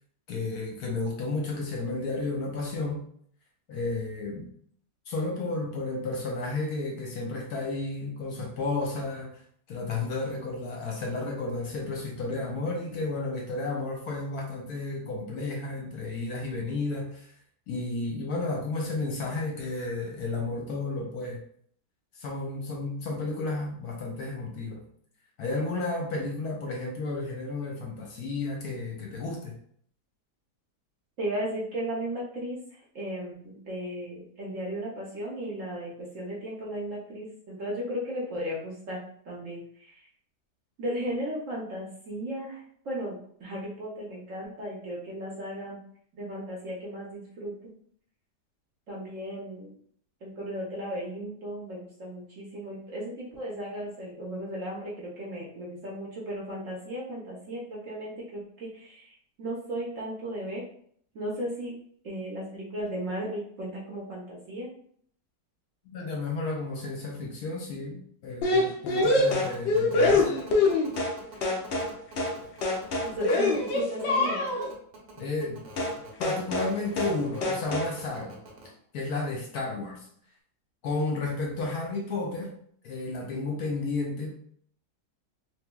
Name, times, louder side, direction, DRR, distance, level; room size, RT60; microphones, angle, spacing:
voice 1, 0.3-3.0 3.7-4.5 5.1-9.4 9.7-17.3 17.7-21.4 22.1-24.8 25.4-29.5 65.9-70.3 75.2-75.6 76.2-78.4 78.9-80.1 80.8-82.5 82.8-84.3, left 3 dB, 70° left, 0 dB, 1.1 m, -32 dB
voice 2, 31.2-32.6 32.9-39.0 39.2-40.0 40.8-45.8 46.2-47.7 48.9-49.7 50.2-60.6 61.1-61.8 62.0-64.7 73.2-74.5, right 1 dB, 55° right, -4 dB, 1.0 m, -35 dB
sound 1, 68.4-71.2 71.4-71.9 72.2-72.4 72.6-74.7 75.8-76.0 76.2-76.7 77.0-77.2 77.4-77.9, left 2 dB, 90° left, 0.5 m, -25 dB
sound 2, 69.0-78.7, right 3 dB, 85° right, 1.5 m, -47 dB
3.4 x 3.0 x 2.2 m, 0.62 s
omnidirectional pair, 1.9 m